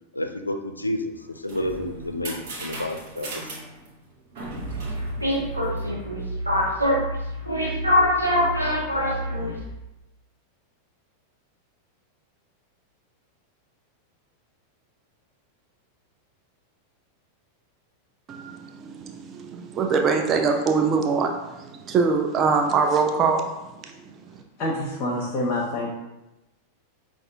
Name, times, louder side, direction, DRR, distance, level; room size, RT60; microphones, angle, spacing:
voice 1, 0.1-3.5, left 1 dB, 80° left, 6 dB, 0.3 m, -30 dB
sound 1, 1.2-6.2, right 2 dB, 50° right, 1.0 m, -38 dB
sound 2, 4.6-9.7, left 1 dB, 85° right, 0.8 m, -24 dB
voice 2, 18.3-23.5 23.8-23.9 24.2-24.4, right 5 dB, 30° right, 3 dB, 0.4 m, -23 dB
voice 3, 24.6-25.9, left 1 dB, 35° left, -3 dB, 0.8 m, -27 dB
5.3 x 2.4 x 2.6 m, 0.98 s
figure-of-eight pair, 90°, 0 cm